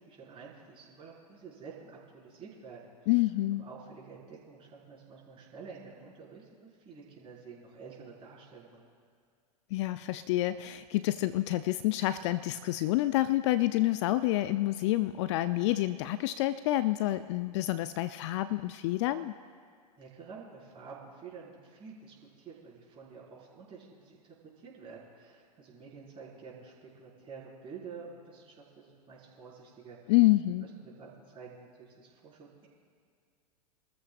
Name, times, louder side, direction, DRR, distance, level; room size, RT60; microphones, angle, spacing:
voice 1, 0.0-3.1 3.6-8.8 20.0-30.1 30.8-32.7, right 5 dB, 25° right, -5 dB, 4.7 m, -49 dB
voice 2, 3.1-3.6 9.7-19.3 30.1-30.7, left 16 dB, 45° left, 14 dB, 0.4 m, -28 dB
26.0 x 14.0 x 2.4 m, 2.1 s
hypercardioid pair, 105°, 21 cm